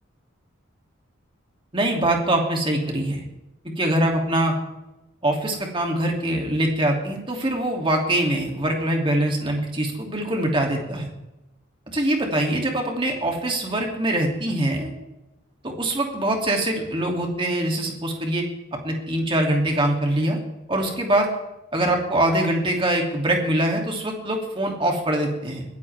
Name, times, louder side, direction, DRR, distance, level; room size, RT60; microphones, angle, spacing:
voice 1, 1.7-3.2 3.6-4.6 5.2-11.1 11.9-14.9 15.6-18.4 18.8-20.4 20.7-21.3 21.7-25.7, right 1 dB, 25° right, 1 dB, 2.8 m, -23 dB
22.0 x 15.5 x 3.6 m, 0.96 s
head